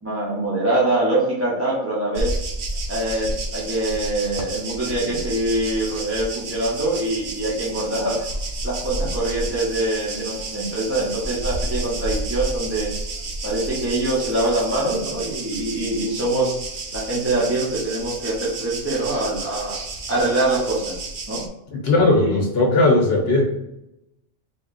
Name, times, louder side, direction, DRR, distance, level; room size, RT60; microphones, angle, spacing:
voice 1, 0.0-2.3 2.9-8.3 8.6-12.9 13.4-16.6 16.9-19.8 20.1-20.9 21.3-21.4 22.1-22.4, right 1 dB, 15° right, -7 dB, 0.8 m, -24 dB
sound 1, 2.2-21.5, right 2 dB, 55° right, 0.6 m, -31 dB
voice 2, 21.7-23.5, left 2 dB, 55° left, 0 dB, 1.2 m, -18 dB
3.7 x 2.3 x 3.9 m, 0.88 s
omnidirectional pair, 1.3 m